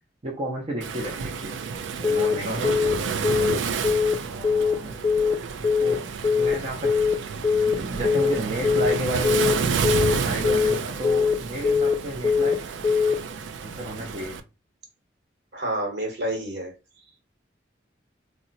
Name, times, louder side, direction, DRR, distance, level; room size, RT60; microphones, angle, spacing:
voice 1, 0.2-1.6 2.0-2.8 4.2-5.4 5.8-6.0 6.4-6.9 7.7-9.7 10.2-12.6 13.6-14.4, right 1 dB, 35° right, -2 dB, 0.6 m, -32 dB
Waves surf, 0.8-14.4, right 5 dB, 80° right, 0.4 m, -30 dB
Telephone, 2.0-2.3 2.6-2.9 3.2-3.5 3.8-4.1 4.4-4.7 5.0-5.3 5.6-5.9 6.2-6.5 6.8-7.1 7.4-7.7 8.0-8.3 8.6-8.9 9.2-9.5 9.8-10.1 10.4-10.7 11.0-11.3 11.6-11.9 12.2-12.5 12.8-13.1, left 5 dB, 25° left, 0.3 m, -21 dB
voice 2, 2.1-2.7 15.5-16.7, right 1 dB, 60° right, 1 dB, 1.1 m, -30 dB
2.7 x 2.1 x 3.9 m, 0.29 s
head